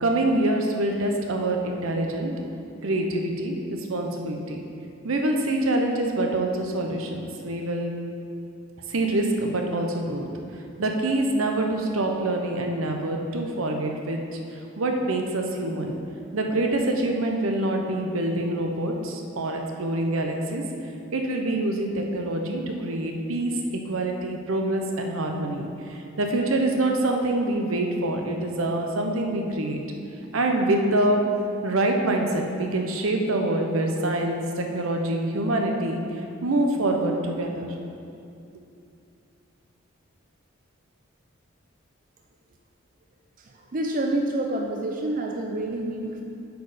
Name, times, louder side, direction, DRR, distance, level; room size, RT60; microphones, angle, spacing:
voice 1, 0.0-2.3 2.8-4.6 5.0-7.9 8.9-10.3 10.8-14.2 14.8-16.0 16.3-20.6 21.1-29.8 30.3-31.2 31.6-36.0 36.4-37.7, right 1 dB, 80° right, 2 dB, 0.8 m, -25 dB
voice 2, 43.7-46.2, right 1 dB, 40° right, 1 dB, 0.5 m, -27 dB
7.9 x 4.7 x 5.0 m, 2.6 s
head